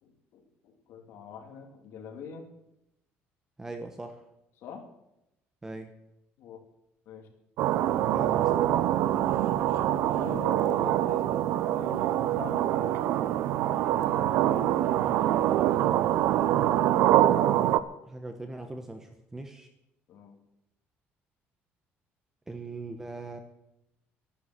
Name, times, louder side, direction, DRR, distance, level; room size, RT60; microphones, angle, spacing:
voice 1, 0.0-2.5 4.6-4.9 6.4-6.6 7.0-7.3 9.9-13.3 13.9-15.3 15.7-16.7 20.1-20.4, left 6 dB, 60° left, 3 dB, 3.0 m, -45 dB
voice 2, 3.6-4.2 5.6-5.9 8.1-8.9 18.0-19.7 22.5-23.4, right 2 dB, 10° right, 6 dB, 1.0 m, -40 dB
sound 1, 7.6-17.8, right 12 dB, 70° right, 0.7 m, -25 dB
13.0 x 11.0 x 7.9 m, 0.87 s
cardioid pair, 175°, 4 cm